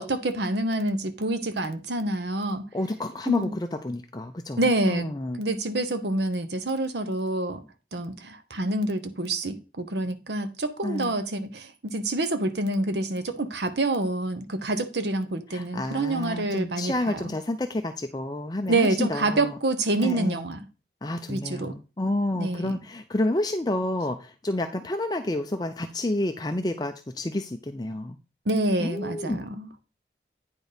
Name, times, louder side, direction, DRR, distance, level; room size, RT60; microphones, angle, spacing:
voice 1, 0.0-2.6 3.3-3.5 4.6-5.1 5.4-7.6 7.9-17.2 18.7-20.6 21.3-21.7 22.4-22.7 28.5-29.7, right 2 dB, 80° right, 1.0 m, -27 dB
voice 2, 2.7-5.4 10.8-11.2 15.5-19.6 20.0-20.5 21.0-28.2 28.8-29.4, left 1 dB, 25° left, 0.5 m, -29 dB
9.2 x 4.5 x 5.1 m
head